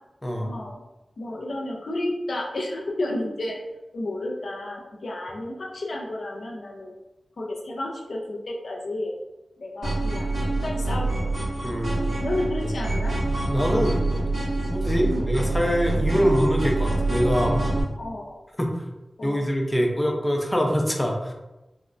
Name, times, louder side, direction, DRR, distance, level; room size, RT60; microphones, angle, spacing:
voice 1, 0.4-0.8 1.2-3.6 3.9-6.9 7.4-9.1 9.6-11.3 12.2-13.2 15.0-15.4 18.0-18.4 19.2-19.5, left 1 dB, 80° left, -1 dB, 0.4 m, -31 dB
sound 1, 9.8-17.8, right 2 dB, 90° right, 1.2 m, -26 dB
voice 2, 11.6-12.1 13.5-14.0 14.7-17.6 18.6-18.7 19.2-21.3, equal, 15° left, 1 dB, 0.5 m, -24 dB
3.5 x 2.1 x 2.4 m, 1.0 s
wide cardioid pair, 60°, 0 cm